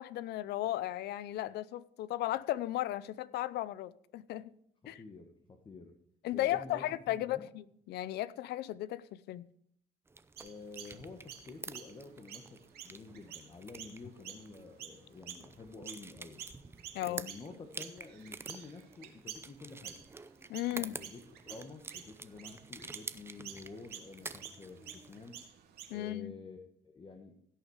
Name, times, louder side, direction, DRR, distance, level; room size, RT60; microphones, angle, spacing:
voice 1, 0.0-4.5 4.9-5.0 6.2-9.5 16.9-17.3 20.5-21.0 25.9-26.4, left 14 dB, 75° left, 0.6 m, -35 dB
voice 2, 4.8-6.0 6.3-7.5 10.4-16.4 17.0-20.0 20.7-25.4 25.9-27.4, left 3 dB, 30° left, 1.4 m, -50 dB
sound 1, 10.1-25.5, right 3 dB, 15° right, 0.6 m, -49 dB
Chirp tweet, 10.4-16.1 16.4-26.1, right 9 dB, 75° right, 2.3 m, -50 dB
16.5 x 6.7 x 4.8 m
cardioid pair, 110°, 17 cm